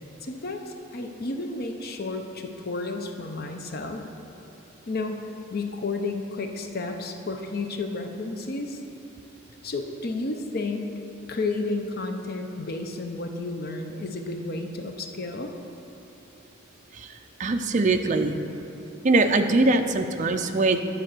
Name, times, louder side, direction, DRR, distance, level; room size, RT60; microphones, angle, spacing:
voice 1, 0.2-4.1 4.9-8.8 9.6-10.9 11.3-15.5, left 3 dB, 50° left, 5 dB, 0.7 m, -32 dB
voice 2, 17.4-18.3 19.0-20.8, right 2 dB, 40° right, 6 dB, 0.5 m, -22 dB
10.5 x 4.4 x 6.7 m, 2.9 s
head